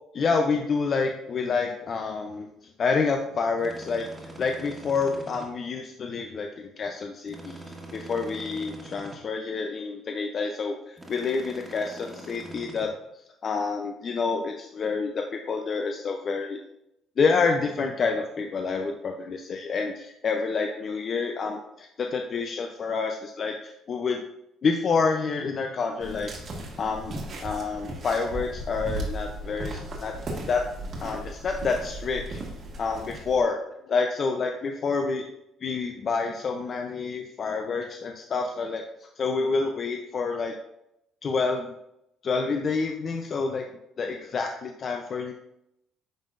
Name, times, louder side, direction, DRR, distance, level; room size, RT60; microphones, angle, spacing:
voice 1, 0.1-2.5 2.8-4.1 4.4-7.6 7.9-12.9 13.4-16.6 17.2-24.2 24.6-26.3 26.8-30.1 30.5-30.6 31.0-32.4 32.8-33.6 33.9-35.2 35.6-40.5 41.2-41.7 42.2-43.6 44.0-45.3, left 4 dB, 45° left, 4 dB, 0.6 m, -28 dB
sound 1, 3.6-5.5 7.3-9.2 11.0-12.9, right 1 dB, 20° right, 1.6 m, -43 dB
sound 2, 26.0-33.4, right 1 dB, 50° right, 1.7 m, -36 dB
10.5 x 3.7 x 2.5 m, 0.81 s
supercardioid pair, 85°, 0 cm